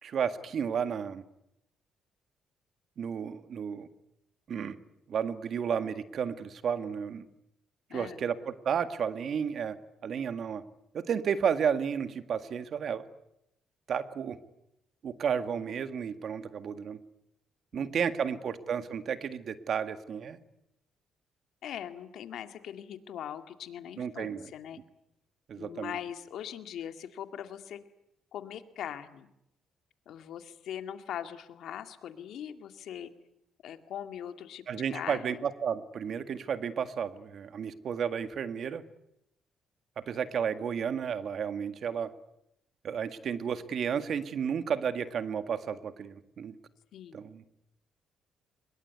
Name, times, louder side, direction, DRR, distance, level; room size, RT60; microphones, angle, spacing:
voice 1, 0.0-1.2 3.0-3.9 4.5-4.8 5.1-7.2 7.9-9.8 10.0-10.6 10.9-13.1 13.9-14.4 15.0-17.0 17.7-20.4 24.0-24.4 25.5-25.9 34.7-38.8 40.0-42.1 42.8-46.6 47.1-47.4, right 7 dB, 60° right, 11 dB, 1.8 m, -32 dB
voice 2, 7.9-8.2 17.7-18.4 21.6-24.8 25.6-27.8 28.3-29.3 30.1-33.1 33.6-34.6 34.9-35.4 46.9-47.2, left 10 dB, 75° left, 8 dB, 2.1 m, -41 dB
24.0 x 21.5 x 9.5 m, 0.82 s
cardioid pair, 90°, 0 cm